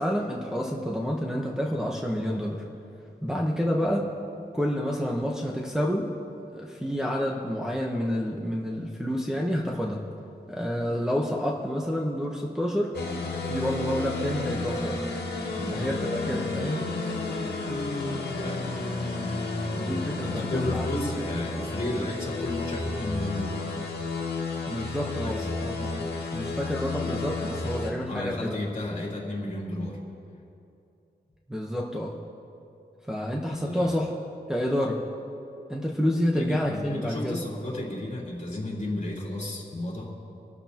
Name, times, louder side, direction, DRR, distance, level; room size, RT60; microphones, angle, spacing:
voice 1, 0.0-2.6 3.2-4.1 4.5-6.1 6.5-10.1 10.5-12.9 13.5-15.0 15.7-16.9 19.7-20.9 24.7-28.6 31.5-32.2 33.1-34.1 34.5-35.0 35.7-37.4, equal, 5° right, -3 dB, 1.1 m, -29 dB
sound 1, 12.9-27.9, left 3 dB, 70° left, 1.9 m, -31 dB
voice 2, 18.4-18.7 20.2-23.7 24.7-24.9 25.2-25.6 28.1-30.0 33.3-34.0 36.3-40.1, left 1 dB, 45° left, -4 dB, 3.5 m, -33 dB
26.0 x 13.0 x 3.0 m, 2.6 s
wide cardioid pair, 130°, 17 cm